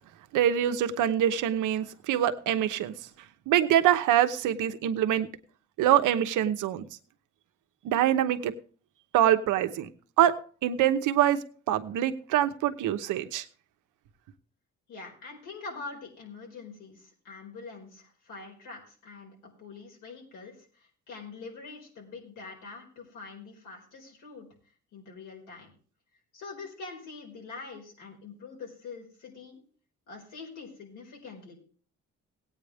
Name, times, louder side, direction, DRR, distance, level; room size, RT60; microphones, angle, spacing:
voice 1, 0.3-2.9 3.5-5.3 5.8-6.8 7.8-8.5 9.1-9.9 10.2-10.3 10.6-11.4 11.7-13.4, right 11 dB, 85° right, 9 dB, 0.9 m, -24 dB
voice 2, 14.9-24.5 24.9-25.7 26.3-29.6 30.1-31.5, left 4 dB, 90° left, 0 dB, 4.7 m, -44 dB
17.0 x 9.0 x 3.5 m, 0.40 s
cardioid pair, 90°, 30 cm